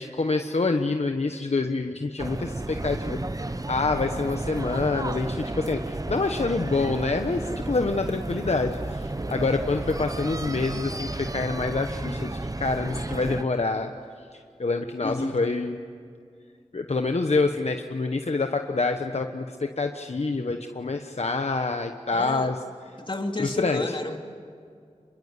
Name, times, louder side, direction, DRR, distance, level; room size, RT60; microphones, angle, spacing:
voice 1, 0.0-3.2 3.5-13.9 14.3-15.8 16.7-22.6 23.4-23.8, left 3 dB, 65° left, 5 dB, 1.2 m, -27 dB
sound 1, 2.2-13.4, right 2 dB, 30° right, 1.0 m, -32 dB
voice 2, 15.0-15.3 22.1-22.5 23.0-24.2, left 2 dB, 45° left, 4 dB, 2.7 m, -31 dB
26.0 x 22.5 x 9.7 m, 2.3 s
wide cardioid pair, 50°, 12 cm